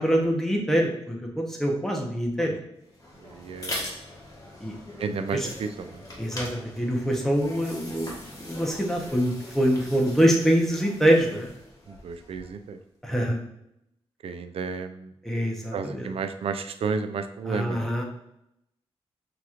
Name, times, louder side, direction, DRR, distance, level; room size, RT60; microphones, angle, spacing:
voice 1, 0.0-2.6 4.6-4.7 5.3-5.5 6.2-8.1 8.4-11.5 13.0-13.4 15.2-16.1 17.4-18.0, equal, 5° left, -1 dB, 1.0 m, -24 dB
sound 1, 2.8-12.7, left 1 dB, 35° left, 1.4 m, -41 dB
voice 2, 3.2-3.9 5.0-6.0 11.9-12.8 14.2-15.1 15.7-17.8, right 5 dB, 65° right, 9 dB, 0.4 m, -32 dB
6.0 x 3.0 x 2.5 m, 0.81 s
cardioid pair, 85°, 10 cm